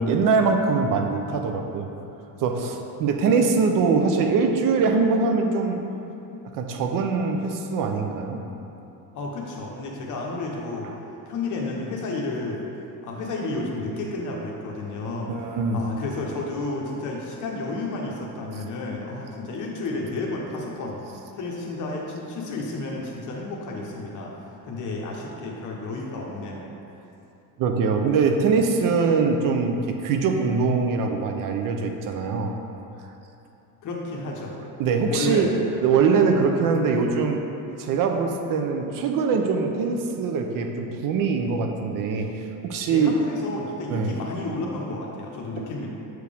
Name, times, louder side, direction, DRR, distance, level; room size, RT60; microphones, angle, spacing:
voice 1, 0.0-1.9 2.4-5.8 6.5-8.4 15.3-15.8 27.6-32.5 34.8-35.5 35.8-37.4 37.8-42.3 42.6-43.1 43.9-44.1, right 5 dB, 65° right, 4 dB, 0.7 m, -22 dB
voice 2, 9.1-10.9 11.3-12.6 13.0-15.3 15.7-21.0 21.3-24.3 24.6-26.7 33.8-34.6 35.1-35.6 42.9-45.9, left 2 dB, 55° left, -1 dB, 1.1 m, -31 dB
7.6 x 4.8 x 3.5 m, 2.9 s
cardioid pair, 135°, 35 cm